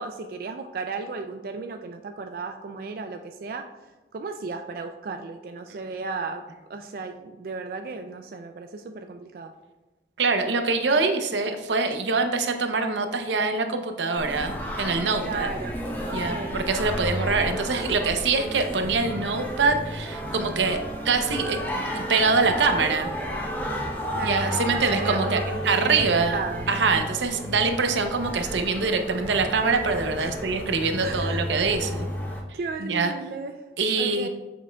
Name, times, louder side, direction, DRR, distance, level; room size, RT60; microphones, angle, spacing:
voice 1, 0.0-3.7 4.1-6.4 6.7-9.5 15.2-15.8 16.1-16.6 24.1-26.6 30.2-30.4 31.0-31.4 32.5-33.5 34.0-34.3, right 4 dB, 55° right, 6 dB, 0.3 m, -34 dB
voice 2, 10.2-15.5 16.1-20.8 21.0-21.6 21.8-23.1 24.2-25.4 25.6-26.4 26.7-32.1 32.8-33.1 33.8-34.3, right 4 dB, 90° right, 6 dB, 0.7 m, -24 dB
Singing, 14.2-32.4, equal, 10° left, 0.7 m, -32 dB
7.3 x 5.9 x 2.3 m, 1.1 s
head